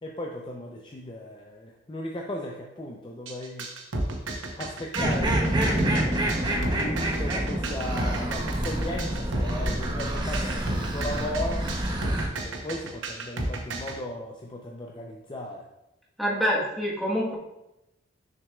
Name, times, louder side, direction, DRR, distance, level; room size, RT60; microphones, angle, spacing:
voice 1, 0.0-3.7 4.6-6.2 6.8-11.7 12.4-15.6, left 1 dB, 25° left, -1 dB, 0.5 m, -36 dB
sound 1, 3.3-14.0, right 2 dB, 80° right, 0.8 m, -32 dB
sound 2, 4.9-12.3, right 1 dB, 25° right, 0.7 m, -27 dB
voice 2, 16.2-17.3, equal, ahead, -5 dB, 1.2 m, -26 dB
6.6 x 6.1 x 2.3 m, 0.90 s
head